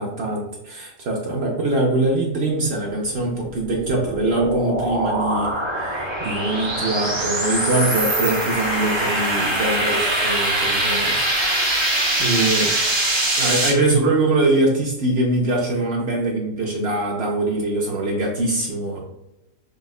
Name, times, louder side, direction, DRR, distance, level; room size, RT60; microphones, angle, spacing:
voice 1, 0.0-12.7 13.3-19.0, right 2 dB, 65° right, 0 dB, 0.6 m, -23 dB
sound 1, 3.1-13.7, right 1 dB, 30° right, 0.6 m, -23 dB
4.7 x 2.1 x 2.3 m, 0.92 s
omnidirectional pair, 1.6 m